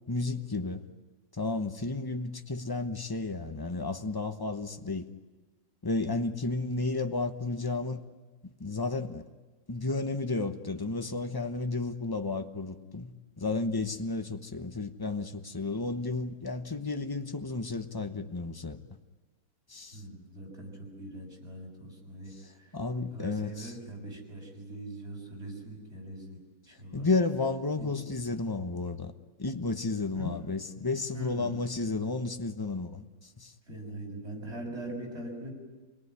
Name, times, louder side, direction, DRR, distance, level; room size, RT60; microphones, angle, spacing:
voice 1, 0.1-0.8 1.3-5.1 5.8-8.0 8.4-9.2 9.7-13.1 13.4-18.8 19.7-20.0 22.7-23.7 26.9-29.1 29.4-33.0 33.4-33.5, left 3 dB, 20° left, 0.7 m, -32 dB
voice 2, 19.9-22.7 23.1-26.4 26.7-27.1 27.8-27.9 30.2-30.3 31.1-31.5 33.7-35.5, right 1 dB, 35° right, 7.3 m, -41 dB
28.0 x 19.0 x 9.7 m
omnidirectional pair, 2.0 m